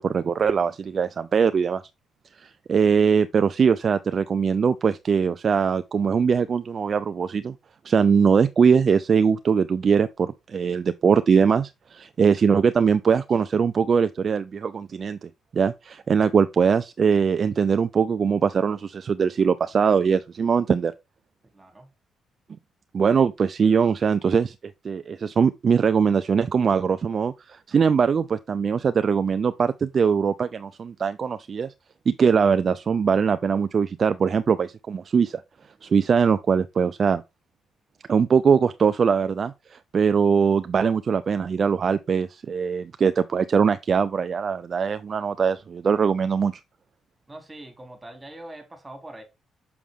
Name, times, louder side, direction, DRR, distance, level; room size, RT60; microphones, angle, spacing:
voice 1, 0.0-1.8 2.4-7.5 7.8-20.9 22.9-24.5 24.8-31.7 32.1-35.4 35.8-37.2 38.1-46.5, right 6 dB, 40° right, 0.4 m, -21 dB
voice 2, 21.5-21.9 47.3-49.2, right 1 dB, 15° right, 3.1 m, -42 dB
7.1 x 6.2 x 3.6 m
cardioid pair, 110°, 0 cm